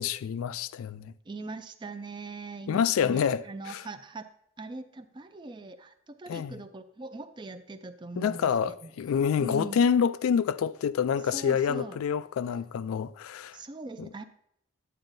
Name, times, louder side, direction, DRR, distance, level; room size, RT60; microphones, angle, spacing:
voice 1, 0.0-1.1 2.7-3.8 6.3-6.6 8.2-13.6 14.0-14.1, left 7 dB, 80° left, 0.3 m, -27 dB
voice 2, 1.3-4.3 4.6-8.5 8.8-8.9 9.4-9.8 11.2-12.0 13.5-14.3, right 3 dB, 20° right, 0.4 m, -41 dB
8.9 x 8.8 x 2.6 m
head